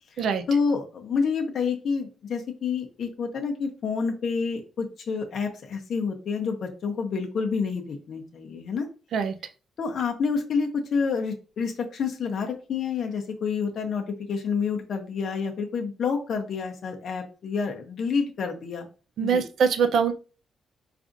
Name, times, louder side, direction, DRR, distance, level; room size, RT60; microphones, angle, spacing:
voice 1, 0.1-8.9 9.8-18.9 19.2-19.4, left 5 dB, 60° left, 3 dB, 0.7 m, -28 dB
voice 2, 19.2-20.1, right 6 dB, 70° right, 7 dB, 0.5 m, -23 dB
4.7 x 2.5 x 2.5 m, 0.35 s
cardioid pair, 120°, 0 cm